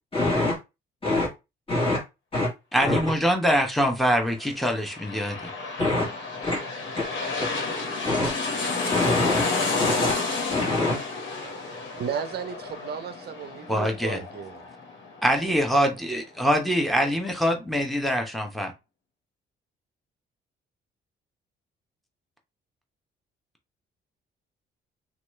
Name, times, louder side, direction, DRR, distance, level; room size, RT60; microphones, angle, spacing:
voice 1, 0.1-0.6 1.0-1.3 1.7-2.0 2.3-2.5 2.8-3.1 5.8-6.1 6.4-6.6 6.9-7.1 7.4-7.5 8.0-8.3 8.9-9.5 9.8-10.2 10.5-11.0 11.4-11.5, left 2 dB, 25° left, 1.5 m, -25 dB
voice 2, 2.7-5.5 13.7-14.2 15.2-18.7, equal, ahead, 0.9 m, -24 dB
sound 1, 4.6-15.9 16.3-16.4, left 3 dB, 70° left, 1.4 m, -31 dB
voice 3, 12.0-14.6, right 7 dB, 55° right, 0.5 m, -34 dB
2.9 x 2.4 x 3.1 m
cardioid pair, 90°, 20 cm